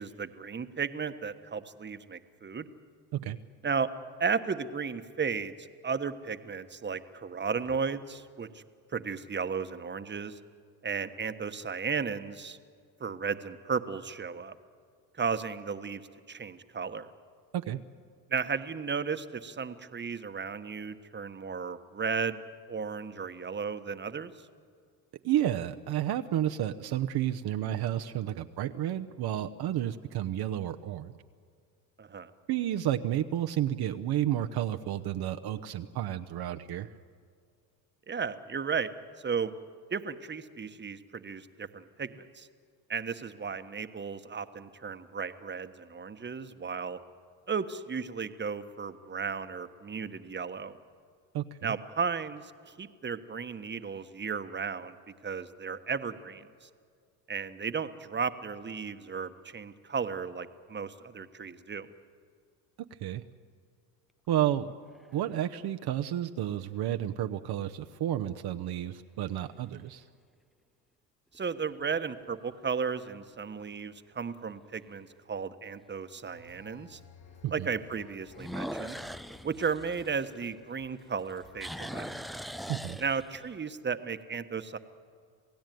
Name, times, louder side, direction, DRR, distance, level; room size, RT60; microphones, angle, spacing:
voice 1, 0.0-2.7 3.6-3.9 4.2-8.6 8.9-10.4 10.8-12.6 13.0-14.5 15.1-16.0 16.3-17.1 18.3-22.4 22.7-24.3 32.0-32.3 38.1-38.9 39.2-39.5 39.9-42.5 42.9-47.0 47.5-50.7 51.6-55.0 55.2-56.7 57.3-61.9 71.3-77.0 77.5-79.0 79.4-82.2 83.0-84.8, right 5 dB, 25° right, 10 dB, 1.3 m, -34 dB
voice 2, 25.2-31.1 32.5-36.9 51.3-51.7 62.8-63.2 64.3-64.7 65.1-70.0 77.4-77.7 82.7-83.0, right 12 dB, 55° right, 6 dB, 1.0 m, -31 dB
sound 1, 64.7-65.4 66.0-66.1 71.3-71.8 72.3-72.4 72.9-73.0 73.3-73.4 74.9-75.0 78.3-80.9 81.2-83.6, equal, ahead, 0.5 m, -41 dB
sound 2, 76.2-82.2, left 6 dB, 65° left, 6.6 m, -56 dB
28.0 x 17.0 x 9.3 m, 2.1 s
supercardioid pair, 90°, 47 cm